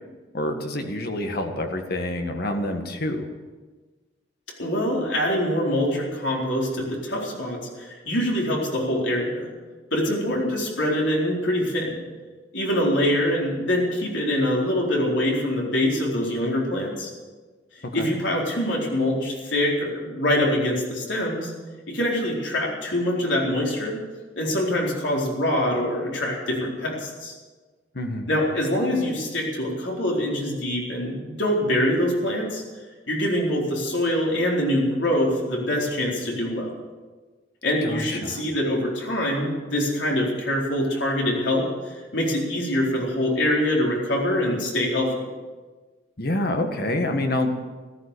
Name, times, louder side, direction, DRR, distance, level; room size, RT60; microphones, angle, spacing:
voice 1, 0.3-3.3 17.8-18.1 27.9-28.3 37.8-38.4 46.2-47.5, left 1 dB, 55° left, 5 dB, 1.7 m, -27 dB
voice 2, 4.6-9.5 9.9-12.0 12.5-17.1 17.7-21.5 21.9-24.0 24.4-27.3 28.3-32.6 33.1-36.7 37.6-45.1, left 1 dB, 75° left, -2 dB, 4.3 m, -24 dB
14.5 x 13.5 x 6.8 m, 1.3 s
head